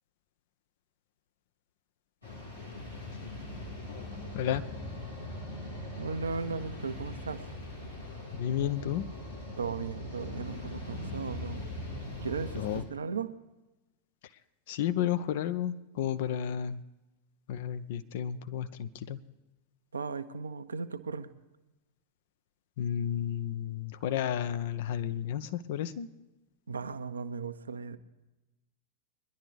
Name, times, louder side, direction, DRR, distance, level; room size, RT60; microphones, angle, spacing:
sound 1, 2.2-12.8, left 1 dB, 80° left, 3.1 m, -41 dB
voice 1, 4.3-4.7 8.3-9.1 12.5-12.8 14.7-16.8 17.5-19.2 22.8-26.1, left 10 dB, 50° left, 12 dB, 0.6 m, -32 dB
voice 2, 6.0-7.5 9.6-11.7 12.2-13.3 19.9-21.3 26.7-28.0, right 5 dB, 75° right, 11 dB, 0.6 m, -36 dB
22.0 x 11.0 x 3.4 m, 1.0 s
figure-of-eight pair, 90°, 0 cm